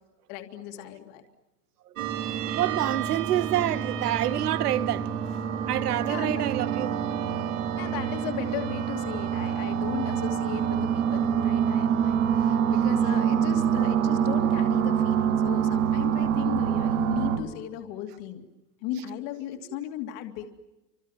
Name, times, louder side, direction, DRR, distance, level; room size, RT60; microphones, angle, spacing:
voice 1, 0.3-1.2 6.1-6.5 7.8-18.4 18.8-20.5, left 11 dB, 35° left, 2.6 m, -36 dB
sound 1, 2.0-17.4, right 8 dB, 50° right, 4.6 m, -26 dB
voice 2, 2.5-5.4 5.7-7.0 12.6-12.7, right 12 dB, 65° right, 1.9 m, -27 dB
29.5 x 26.0 x 7.3 m
supercardioid pair, 165°, 49 cm